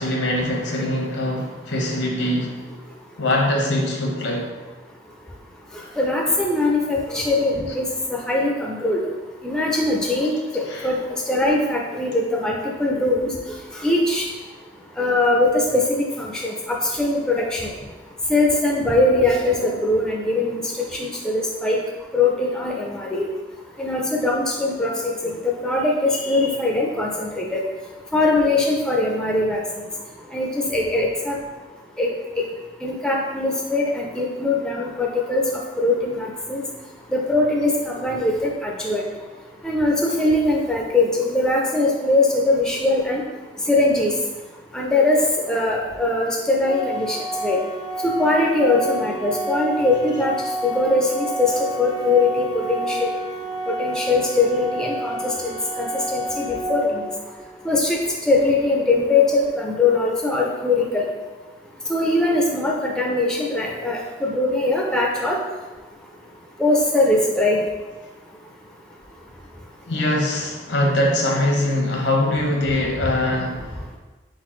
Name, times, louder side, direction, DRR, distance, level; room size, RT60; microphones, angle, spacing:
voice 1, 0.0-2.6 3.2-4.5 10.7-10.9 69.9-74.0, left 1 dB, 80° left, 1 dB, 0.9 m, -22 dB
voice 2, 6.0-9.0 9.4-11.0 11.3-13.3 13.8-14.3 15.0-17.7 18.3-21.8 22.1-23.3 23.8-27.6 28.1-29.9 30.3-31.4 32.0-32.1 32.4-32.5 32.8-35.4 35.8-36.6 37.1-39.1 39.6-43.2 43.7-44.1 44.7-47.2 47.4-47.6 48.0-50.3 50.6-53.1 53.7-57.0 57.6-58.0 58.2-61.0 61.9-65.4 66.6-67.6, left 2 dB, 5° left, -2 dB, 0.4 m, -21 dB
Organ, 46.6-57.6, right 1 dB, 60° left, 0.5 m, -29 dB
4.3 x 3.9 x 3.1 m, 1.2 s
head